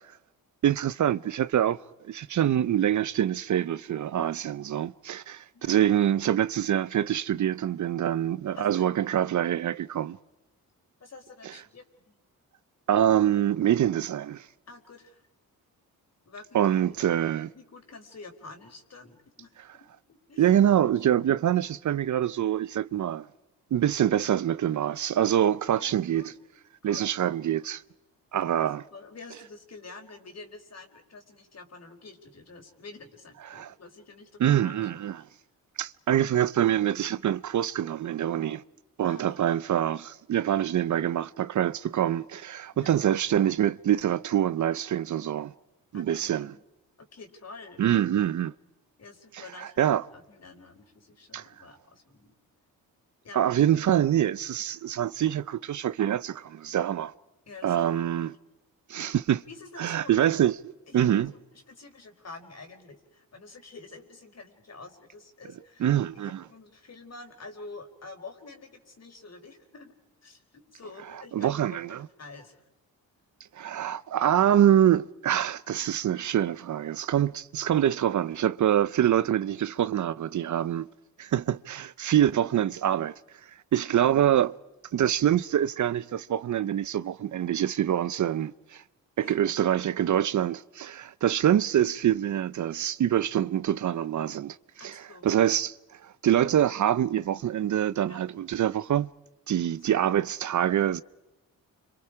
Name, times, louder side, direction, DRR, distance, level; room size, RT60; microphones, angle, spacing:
voice 1, 0.6-1.8 2.1-10.2 12.9-14.5 16.5-17.5 20.4-23.3 23.7-26.3 26.8-27.8 28.3-28.8 33.5-33.7 34.4-35.2 35.8-38.6 39.0-45.5 45.9-46.5 47.8-48.5 49.3-50.0 51.3-51.5 53.3-57.1 57.6-58.3 58.9-59.4 59.8-61.3 65.8-66.4 71.4-72.0 73.5-80.9 81.2-83.1 83.7-84.5 84.9-88.8 89.2-95.7 96.0-99.1 99.5-101.0, right 10 dB, 55° right, 0.7 m, -25 dB
voice 2, 8.5-9.0 11.0-12.2 14.7-15.2 16.2-16.6 16.9-17.2 17.5-19.5 20.1-20.5 20.8-20.9 25.7-26.4 26.8-27.3 28.6-34.9 39.0-39.5 42.7-43.0 45.9-46.6 47.0-47.8 49.0-52.3 53.2-53.6 57.5-58.2 59.5-60.1 60.9-69.9 70.2-72.6 89.2-89.4 94.8-95.3 98.1-98.2 99.8-100.0, left 3 dB, 45° left, 4.7 m, -48 dB
29.5 x 26.5 x 4.9 m
cardioid pair, 75°, 36 cm